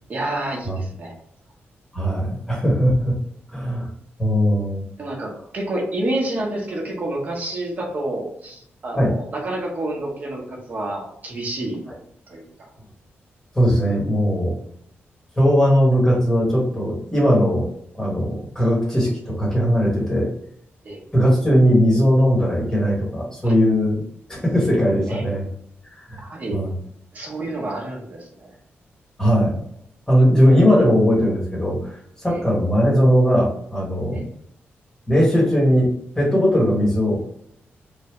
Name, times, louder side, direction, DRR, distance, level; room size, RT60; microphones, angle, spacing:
voice 1, 0.1-1.1 2.5-2.6 5.0-11.8 12.3-12.7 20.8-21.0 23.4-23.5 25.1-25.2 26.2-26.6 27.1-28.5 32.3-32.4 34.1-34.2, right 1 dB, 40° right, -1 dB, 0.9 m, -29 dB
voice 2, 1.9-3.2 3.5-3.9 4.2-4.8 8.9-9.1 13.5-14.6 15.4-17.7 17.9-20.3 21.1-24.0 24.3-25.5 26.1-26.2 26.5-26.7 29.2-29.6 30.1-34.3 35.1-37.2, equal, 15° left, -4 dB, 1.1 m, -19 dB
3.3 x 2.2 x 2.9 m, 0.70 s
wide cardioid pair, 165°, 4 cm